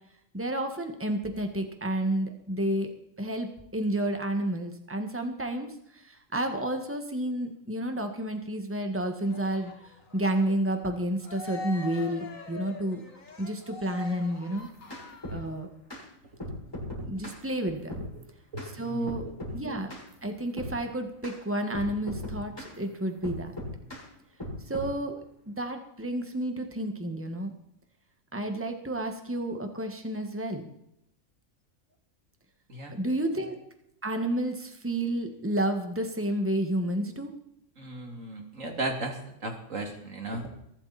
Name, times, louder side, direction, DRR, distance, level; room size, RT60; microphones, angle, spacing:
voice 1, 0.3-2.9 3.2-9.7 10.1-13.0 13.4-14.7 15.3-15.7 17.1-17.9 18.8-19.3 19.5-19.9 20.2-23.5 24.7-27.5 28.3-30.7 32.9-33.6 34.0-37.3, right 1 dB, 10° right, 5 dB, 1.9 m, -30 dB
Cheering, 9.2-15.7, left 3 dB, 70° left, 2.5 m, -44 dB
sound 1, 14.6-15.4 15.9-16.0 16.4-17.4 17.9-18.1 18.6-18.7 19.1-19.6 19.9-20.1 20.6-20.8 21.2-21.4 21.7-22.8 23.2-24.1 24.4-24.9, left 1 dB, 15° left, 7.4 m, -37 dB
voice 2, 18.5-19.2 32.7-32.9 37.8-40.5, right 2 dB, 70° right, 3 dB, 3.2 m, -35 dB
23.0 x 12.5 x 4.4 m, 0.77 s
omnidirectional pair, 1.4 m